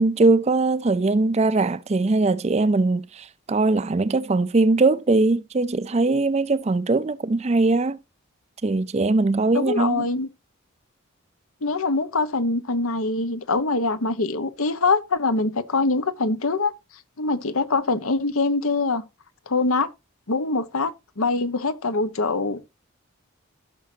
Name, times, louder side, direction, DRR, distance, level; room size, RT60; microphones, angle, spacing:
voice 1, 0.0-8.0 8.6-10.0, right 3 dB, 30° right, 0.4 m, -21 dB
voice 2, 9.5-10.3 11.6-16.7 17.2-19.0 19.5-19.9 20.3-22.6, left 3 dB, 80° left, 1.1 m, -23 dB
15.0 x 6.1 x 2.8 m
head